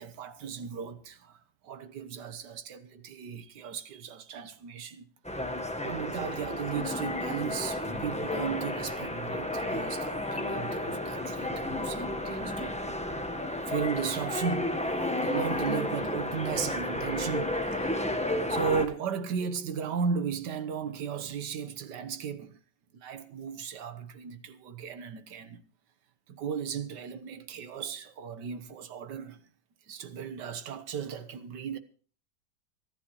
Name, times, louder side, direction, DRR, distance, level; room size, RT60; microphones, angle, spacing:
voice 1, 0.0-1.4 1.6-5.1 5.8-12.8 13.7-18.2 18.5-22.6 22.9-25.6 26.3-29.4 29.9-31.8, right 6 dB, 65° right, 1.6 m, -35 dB
sound 1, 5.2-18.9, left 1 dB, 5° left, 0.8 m, -32 dB
24.5 x 11.5 x 3.1 m
omnidirectional pair, 2.1 m